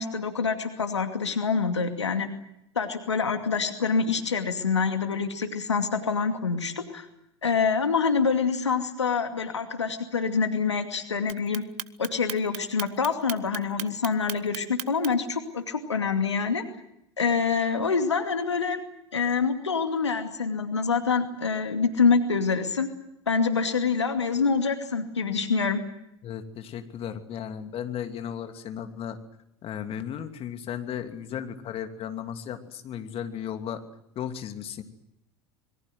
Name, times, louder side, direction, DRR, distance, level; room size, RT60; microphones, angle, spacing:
voice 1, 0.0-2.3 2.8-7.1 7.4-11.6 12.0-16.6 17.2-18.8 19.1-22.9 23.3-25.8, left 5 dB, 90° left, 7 dB, 2.5 m, -26 dB
Clock, 11.3-15.3, right 17 dB, 50° right, 1.1 m, -35 dB
voice 2, 26.2-29.2 29.6-33.8 34.1-34.8, left 9 dB, 40° left, 7 dB, 2.8 m, -35 dB
26.5 x 22.5 x 7.8 m, 0.79 s
hypercardioid pair, 80°, 14 cm